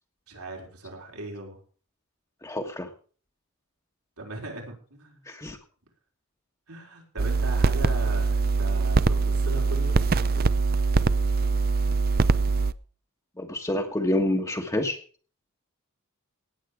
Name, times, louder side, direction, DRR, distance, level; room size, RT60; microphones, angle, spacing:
voice 1, 0.3-1.6 4.2-5.2 6.7-10.6, right 2 dB, 80° right, 0 dB, 4.8 m, -39 dB
voice 2, 2.4-2.9 5.3-5.6 13.4-15.0, left 1 dB, 15° left, 2 dB, 1.4 m, -27 dB
sound 1, 7.2-12.7, right 4 dB, 45° right, 0.6 m, -23 dB
18.0 x 8.6 x 4.9 m, 0.40 s
head